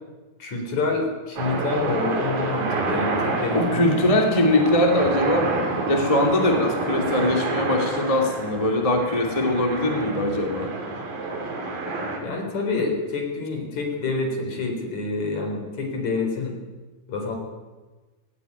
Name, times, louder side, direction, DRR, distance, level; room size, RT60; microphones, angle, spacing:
voice 1, 0.4-4.0 12.2-16.6 17.1-17.4, left 3 dB, 50° left, 2 dB, 4.9 m, -27 dB
sound 1, 1.4-12.2, right 3 dB, 60° right, 4.8 m, -28 dB
voice 2, 3.5-5.5 5.9-10.7, left 1 dB, 10° left, 3 dB, 1.7 m, -21 dB
17.5 x 16.5 x 9.6 m, 1.3 s
omnidirectional pair, 4.5 m